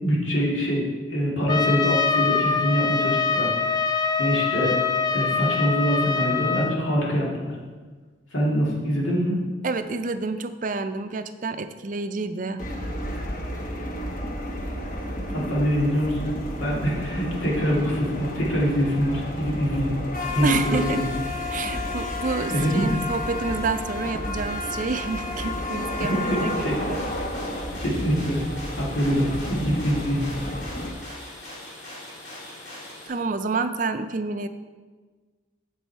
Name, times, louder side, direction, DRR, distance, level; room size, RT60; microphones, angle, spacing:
voice 1, 0.0-3.8 4.2-4.7 5.1-7.5 8.3-9.4 15.3-16.3 16.6-19.9 20.3-21.1 22.5-23.0 26.0-26.8 27.8-28.4 28.8-30.2, equal, 85° left, -5 dB, 2.2 m, -24 dB
Trumpet, 1.5-6.8, left 5 dB, 20° left, 0.3 m, -24 dB
voice 2, 9.6-12.6 20.4-21.0 21.5-27.1 33.1-34.5, right 4 dB, 40° right, 9 dB, 0.4 m, -29 dB
sound 1, 12.6-30.9, left 1 dB, 45° left, 1.1 m, -31 dB
sound 2, 26.1-33.1, left 1 dB, 65° left, 2.7 m, -41 dB
7.7 x 7.2 x 4.6 m, 1.4 s
head